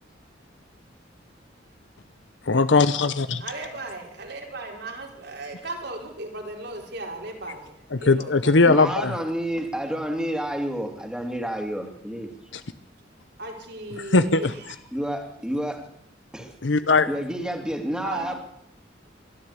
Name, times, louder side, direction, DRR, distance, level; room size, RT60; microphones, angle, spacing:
voice 1, 2.4-3.4 7.9-9.1 12.5-12.6 14.0-14.5 16.6-17.1, left 3 dB, 70° left, 12 dB, 0.9 m, -20 dB
voice 2, 3.4-8.5 13.4-14.5 18.0-18.4, right 2 dB, 60° right, 3 dB, 4.2 m, -36 dB
voice 3, 8.6-12.3 14.9-15.8 16.3-16.5 17.1-18.3, equal, 5° right, 4 dB, 2.8 m, -29 dB
23.0 x 13.5 x 8.5 m, 0.75 s
head